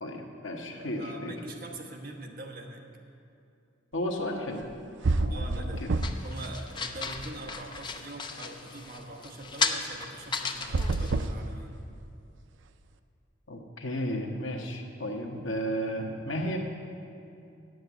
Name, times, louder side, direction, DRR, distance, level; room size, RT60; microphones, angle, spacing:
voice 1, 0.0-1.4 3.9-4.6 5.1-5.9 13.5-16.6, equal, 75° left, 1 dB, 1.2 m, -33 dB
voice 2, 0.7-2.9 5.3-5.9 6.2-11.8, right 2 dB, 45° right, 2 dB, 1.1 m, -43 dB
sound 1, 4.6-4.7 5.0-6.4 6.7-7.8 10.5-12.1, right 2 dB, 65° right, 0.4 m, -29 dB
sound 2, 6.0-11.3, left 4 dB, 25° left, 0.5 m, -35 dB
8.8 x 7.8 x 8.1 m, 2.6 s
head